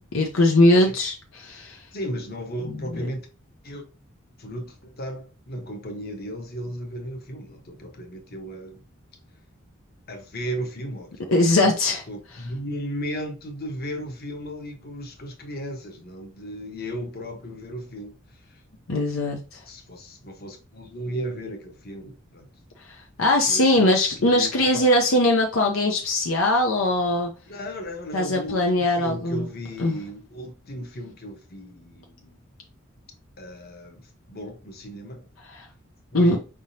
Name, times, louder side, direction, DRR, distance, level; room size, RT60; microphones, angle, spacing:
voice 1, 0.1-1.8 11.3-12.0 18.9-19.6 22.8-27.3 28.1-29.4 29.8-30.0 36.1-36.4, left 1 dB, 75° left, 0.8 m, -21 dB
voice 2, 1.9-3.3 3.6-3.8 4.4-8.8 10.1-11.2 11.6-11.7 12.1-18.6 19.7-22.5 23.4-24.8 27.5-32.4 33.4-35.3 36.1-36.4, equal, 50° left, 1.2 m, -35 dB
5.0 x 3.7 x 2.7 m
head